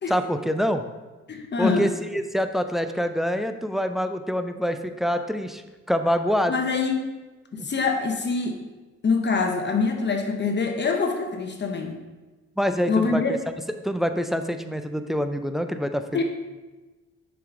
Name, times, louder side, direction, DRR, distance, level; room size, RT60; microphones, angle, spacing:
voice 1, 0.1-0.8 1.6-5.6 5.9-6.6 7.6-7.7 12.6-13.4 13.8-16.2, equal, ahead, 8 dB, 0.4 m, -25 dB
voice 2, 1.3-1.9 6.5-7.0 7.5-8.6 9.0-12.0 12.9-13.3 16.1-16.2, left 4 dB, 35° left, 3 dB, 0.9 m, -24 dB
6.7 x 5.0 x 3.7 m, 1.2 s
cardioid pair, 90°, 30 cm